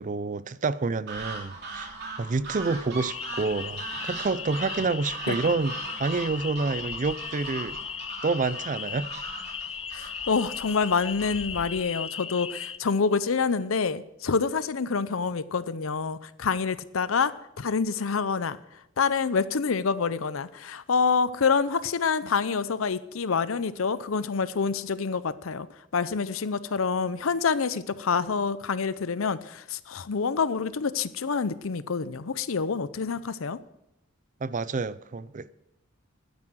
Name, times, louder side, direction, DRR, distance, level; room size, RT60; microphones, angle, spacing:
voice 1, 0.0-1.9 2.2-7.8 8.2-9.1 34.4-35.5, right 4 dB, 40° right, 0.5 m, -28 dB
sound 1, 1.1-11.8, right 3 dB, 55° right, 3.2 m, -40 dB
sound 2, 3.1-12.8, left 7 dB, 30° left, 0.5 m, -37 dB
voice 2, 9.9-18.6 19.0-25.7 25.9-33.6, left 5 dB, 80° left, 0.6 m, -27 dB
12.5 x 9.7 x 6.2 m
head